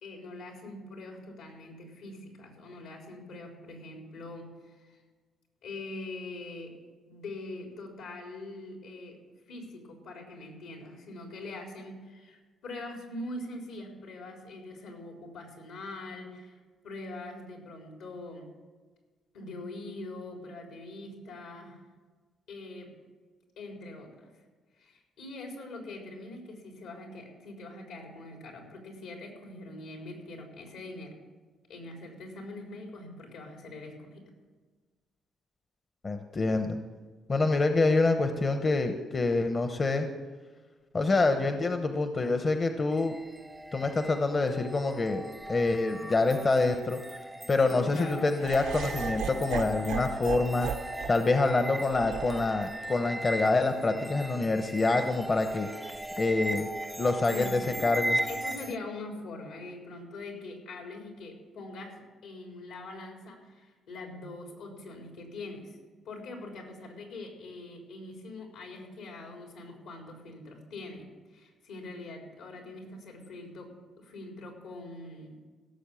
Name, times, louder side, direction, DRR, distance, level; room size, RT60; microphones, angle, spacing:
voice 1, 0.0-5.0 5.6-6.7 7.1-9.2 9.5-16.6 16.8-18.5 19.3-21.8 22.5-22.9 23.6-24.3 24.8-31.1 31.7-34.2 47.6-48.3 57.2-57.6 58.3-62.0 62.2-65.8 66.1-71.1 71.3-73.7 74.0-75.4, left 2 dB, 85° left, 1 dB, 3.9 m, -43 dB
voice 2, 36.0-36.8 37.3-40.1 40.9-43.2 43.7-47.0 47.5-50.7 51.1-55.7 56.2-56.7 57.0-58.2, left 3 dB, 35° left, 7 dB, 0.9 m, -26 dB
sound 1, 42.9-58.8, right 1 dB, 5° right, 0.4 m, -38 dB
Laughter, 48.4-54.5, right 7 dB, 85° right, 1.0 m, -38 dB
16.5 x 7.1 x 7.0 m, 1.4 s
cardioid pair, 90°, 0 cm